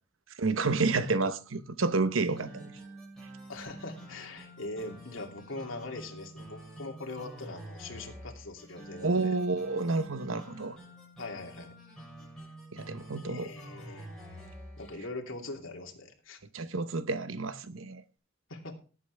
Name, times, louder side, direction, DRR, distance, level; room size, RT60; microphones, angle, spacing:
voice 1, 0.4-2.7 9.0-10.8 12.7-13.5 16.5-18.0, right 3 dB, 80° right, 1.0 m, -30 dB
sound 1, 2.2-15.0, right 1 dB, 5° left, 6.3 m, -48 dB
voice 2, 3.5-9.3 11.2-11.7 13.2-14.4 14.8-16.4 18.5-18.7, left 2 dB, 80° left, 2.9 m, -42 dB
18.0 x 8.6 x 3.4 m
head